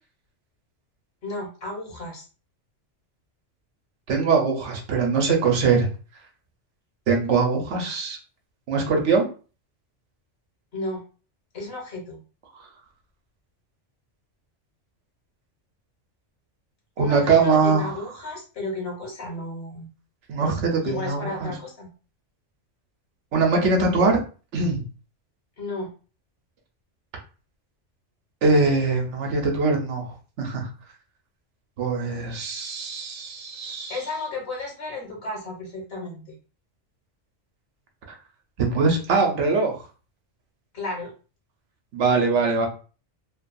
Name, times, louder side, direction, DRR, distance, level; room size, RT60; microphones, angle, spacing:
voice 1, 1.2-2.2 10.7-11.0 11.5-12.2 17.0-19.9 20.8-21.9 25.6-25.9 33.9-36.2 40.7-41.1, left 2 dB, 60° left, -1 dB, 1.2 m, -33 dB
voice 2, 4.1-5.9 7.1-8.2 8.7-9.2 17.0-18.0 20.3-21.5 23.3-24.2 24.5-24.8 28.4-30.7 31.8-34.0 38.6-39.8 41.9-42.7, right 4 dB, 75° right, 2 dB, 1.1 m, -22 dB
2.8 x 2.3 x 2.5 m, 0.36 s
omnidirectional pair, 1.2 m